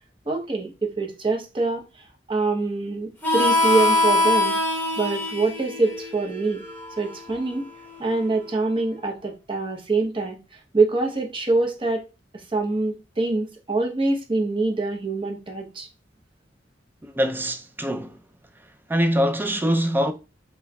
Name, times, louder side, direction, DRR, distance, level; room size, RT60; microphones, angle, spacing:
voice 1, 0.3-1.8 2.3-4.6 5.0-6.6 7.0-7.7 8.0-10.4 10.7-12.1 12.5-15.9, right 3 dB, 30° right, 0.7 m, -25 dB
Harmonica, 3.2-8.5, left 2 dB, 10° left, 0.9 m, -24 dB
voice 2, 17.0-18.2 18.9-20.1, equal, 10° right, 0.4 m, -23 dB
4.2 x 3.3 x 2.2 m
head